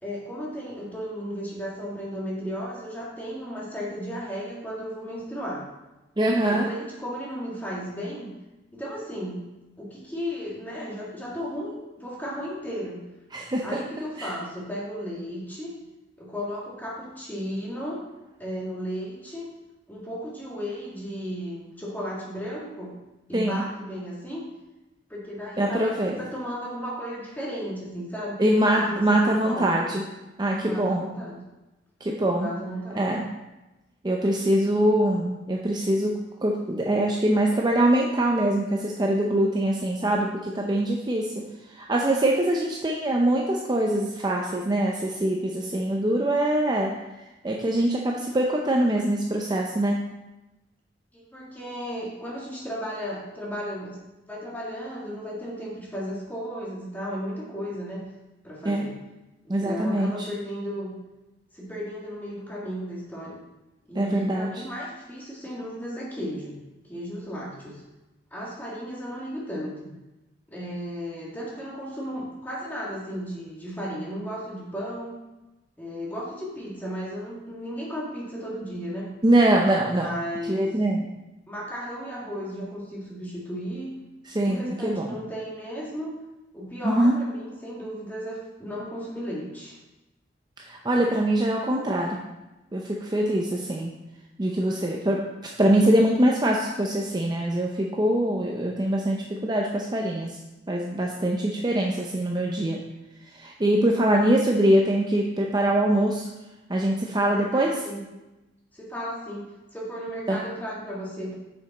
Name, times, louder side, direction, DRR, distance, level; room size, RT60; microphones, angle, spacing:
voice 1, 0.0-5.7 6.4-8.3 8.7-9.5 9.8-13.1 13.6-15.7 16.2-18.0 18.4-19.5 19.9-22.9 23.3-24.5 25.1-28.4 28.8-29.7 30.6-31.4 32.3-33.1 51.1-54.0 54.3-58.1 58.4-59.0 59.4-61.0 61.5-63.4 63.9-66.6 66.9-67.8 68.3-70.0 70.5-75.2 75.8-79.1 79.9-80.7 81.5-83.9 84.5-86.1 86.5-89.8 107.5-108.1 108.7-111.3, equal, 10° left, -5 dB, 1.8 m, -34 dB
voice 2, 6.2-6.7 13.3-13.8 14.2-14.3 23.3-23.6 25.6-26.2 28.4-30.0 30.4-31.1 32.0-32.5 32.9-33.2 34.0-41.4 41.7-46.9 47.4-50.0 58.6-58.9 59.5-60.1 64.0-64.5 79.2-80.1 80.5-81.1 84.3-85.1 86.8-87.2 90.7-92.2 92.7-93.9 94.4-95.3 95.6-100.4 100.7-102.8 103.3-106.3 106.7-107.8 110.3-110.4, right 1 dB, 20° right, -1 dB, 0.5 m, -23 dB
6.7 x 6.5 x 4.1 m, 1.0 s
head